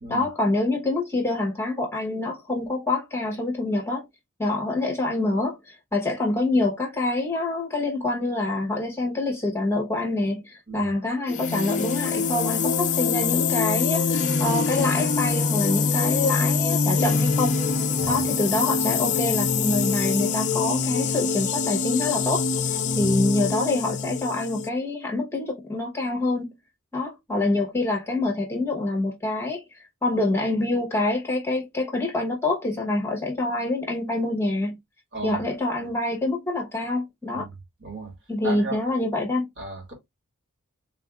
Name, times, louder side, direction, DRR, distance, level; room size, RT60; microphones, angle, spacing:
voice 1, 0.1-4.1 4.4-17.6 18.1-26.6 26.9-34.7 35.2-37.4 38.3-39.5, left 2 dB, 10° left, 1.0 m, -26 dB
sound 1, 11.3-24.7, left 5 dB, 35° left, 0.4 m, -24 dB
voice 2, 37.8-38.1 38.4-38.8 39.6-39.9, right 2 dB, 55° right, 2.0 m, -35 dB
3.6 x 2.6 x 3.5 m
head